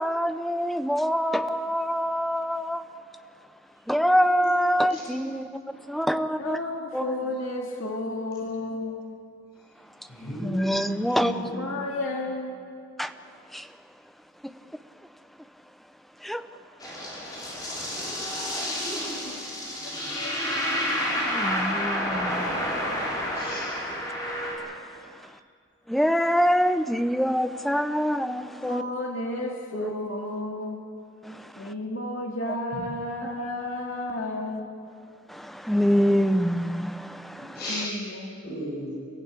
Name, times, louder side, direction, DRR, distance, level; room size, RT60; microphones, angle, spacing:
voice 1, 0.0-2.8 3.9-6.6 6.9-7.2 10.4-11.5 13.0-13.1 13.5-13.7 16.2-16.4 21.3-22.6 22.9-23.5 24.6-24.8 25.1-25.3 25.9-28.8 29.7-29.9 31.2-31.7 35.3-37.6, equal, ahead, 10 dB, 0.7 m, -26 dB
voice 2, 4.0-4.5 4.9-5.7 6.0-6.1 10.0-11.8 23.3-23.7 32.7-32.8 37.5-37.8 38.4-38.9, left 1 dB, 55° left, -8 dB, 7.6 m, -36 dB
voice 3, 6.4-9.0 11.2-12.6 19.2-19.3 19.8-20.4 28.6-30.8 31.6-34.7 37.7-38.4, left 2 dB, 85° left, 0 dB, 2.3 m, -32 dB
sound 1, 16.8-24.5, equal, 20° left, 6.0 m, -29 dB
30.0 x 15.5 x 8.4 m, 2.2 s
head